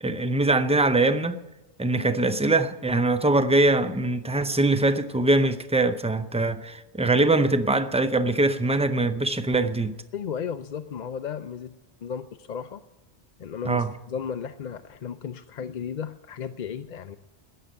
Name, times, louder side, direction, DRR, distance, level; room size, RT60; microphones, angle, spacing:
voice 1, 0.0-1.4 1.8-9.9 13.7-13.9, right 2 dB, 10° right, 0.5 m, -22 dB
voice 2, 10.1-11.7 12.0-12.8 13.4-17.2, left 7 dB, 50° left, 0.6 m, -34 dB
13.5 x 9.0 x 9.5 m
omnidirectional pair, 1.1 m